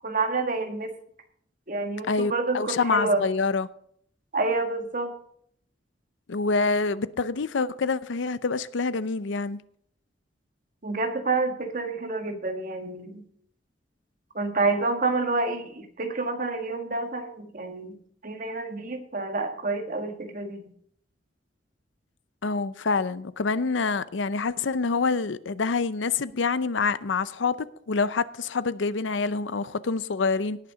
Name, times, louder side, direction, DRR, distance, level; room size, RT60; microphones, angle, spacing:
voice 1, 0.0-0.9 1.7-3.2 4.3-5.1 10.8-13.2 14.4-18.0 18.2-20.7, right 3 dB, 45° right, 1.7 m, -28 dB
voice 2, 2.1-3.7 6.3-9.6 22.4-27.6 27.9-30.6, left 4 dB, 90° left, 0.6 m, -26 dB
18.0 x 6.6 x 5.0 m
head